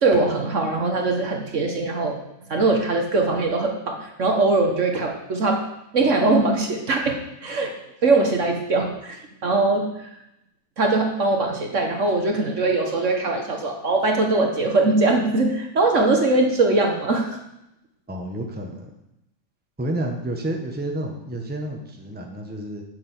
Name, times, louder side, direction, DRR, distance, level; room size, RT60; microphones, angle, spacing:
voice 1, 0.0-2.2 2.5-5.6 5.9-7.7 8.0-10.2 10.8-17.2, right 3 dB, 50° right, 3 dB, 1.5 m, -21 dB
voice 2, 18.1-18.9 19.8-22.8, right 1 dB, 5° right, 1 dB, 1.2 m, -30 dB
7.6 x 6.8 x 8.1 m, 0.85 s
omnidirectional pair, 1.7 m